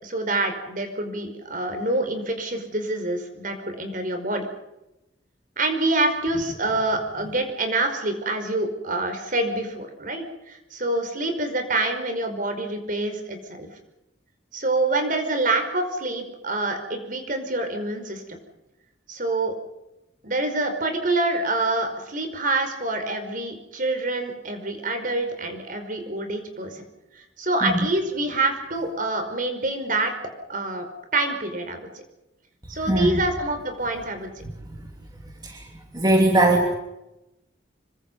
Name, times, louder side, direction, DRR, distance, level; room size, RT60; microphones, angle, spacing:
voice 1, 0.0-4.4 5.6-13.7 14.5-18.4 19.1-19.5 20.2-26.8 27.1-30.1 30.5-30.9 31.1-32.0 32.7-34.3, right 2 dB, 45° right, 6 dB, 5.1 m, -26 dB
voice 2, 32.9-33.2 34.4-34.9 35.4-35.7 35.9-36.7, right 1 dB, 20° right, 1 dB, 2.9 m, -21 dB
26.5 x 24.5 x 5.5 m, 0.92 s
head